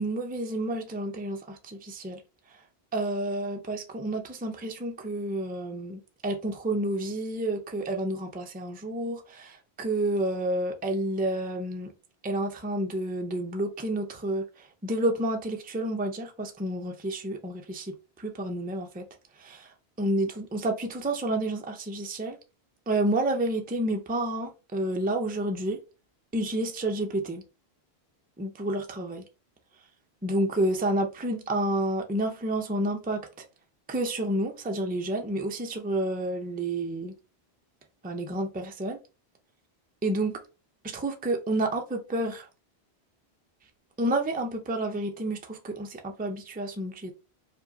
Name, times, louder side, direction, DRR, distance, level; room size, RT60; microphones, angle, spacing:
voice 1, 0.0-2.2 2.5-2.6 2.9-11.9 12.2-19.0 19.4-22.4 22.9-25.8 26.3-27.4 28.4-29.2 30.2-33.4 33.9-37.1 38.0-39.0 40.0-40.4 40.8-42.5 44.0-47.1, right 1 dB, 15° right, 0.4 m, -30 dB
4.8 x 2.6 x 2.7 m
omnidirectional pair, 1.1 m